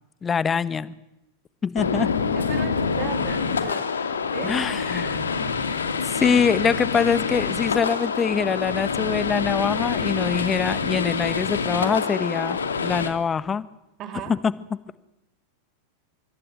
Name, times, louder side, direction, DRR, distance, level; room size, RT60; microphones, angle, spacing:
voice 1, 0.2-0.9 1.6-2.1 4.4-5.2 6.0-13.6 14.3-15.0, left 6 dB, 20° left, 15 dB, 1.5 m, -24 dB
sound 1, 1.8-13.1, left 5 dB, 70° left, 2.6 m, -26 dB
voice 2, 2.3-3.9 4.3-4.6 14.0-14.3, right 9 dB, 35° right, 6 dB, 4.0 m, -36 dB
26.0 x 20.5 x 7.9 m, 0.90 s
figure-of-eight pair, 90°, 0 cm